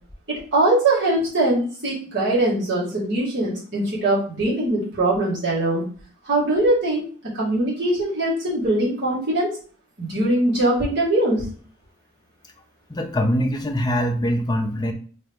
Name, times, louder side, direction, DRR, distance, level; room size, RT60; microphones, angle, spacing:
voice 1, 0.3-5.9 6.2-7.0 7.3-9.5 10.0-11.5, right 1 dB, 55° right, -8 dB, 1.9 m, -21 dB
voice 2, 12.9-14.9, equal, 20° left, 4 dB, 0.4 m, -23 dB
3.9 x 2.9 x 3.5 m, 0.42 s
head